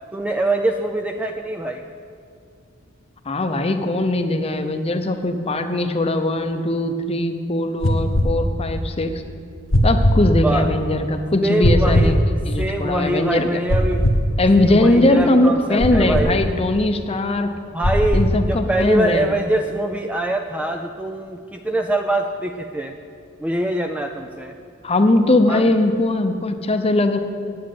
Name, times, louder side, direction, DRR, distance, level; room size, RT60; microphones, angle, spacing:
voice 1, 0.1-1.8 10.4-10.7 11.4-12.2 12.6-14.0 14.6-16.4 17.7-22.9 23.4-24.5 25.5-25.7, right 1 dB, 5° right, 4 dB, 0.4 m, -23 dB
voice 2, 3.2-9.1 9.8-12.1 12.5-13.5 14.4-17.5 18.1-19.4 24.8-27.2, left 2 dB, 30° left, 7 dB, 0.7 m, -20 dB
sound 1, 7.8-8.3 9.7-10.2 11.6-12.1 13.7-14.2 15.8-16.3 17.8-18.4, equal, 75° left, 1.2 m, -18 dB
9.3 x 7.6 x 8.6 m, 2.3 s
head